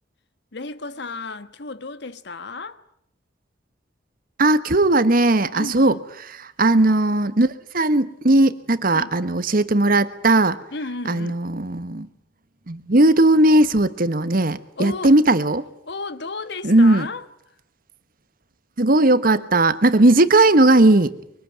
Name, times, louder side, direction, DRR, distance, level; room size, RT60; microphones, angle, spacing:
voice 1, 0.5-2.8 5.5-6.0 8.9-9.1 10.7-11.4 14.8-15.2 15.9-17.2, left 3 dB, 65° left, 1.4 m, -33 dB
voice 2, 4.4-6.0 6.6-10.6 11.0-12.1 12.7-15.6 16.6-17.1 18.8-21.2, right 2 dB, 50° right, 1.3 m, -17 dB
24.5 x 23.5 x 9.3 m
head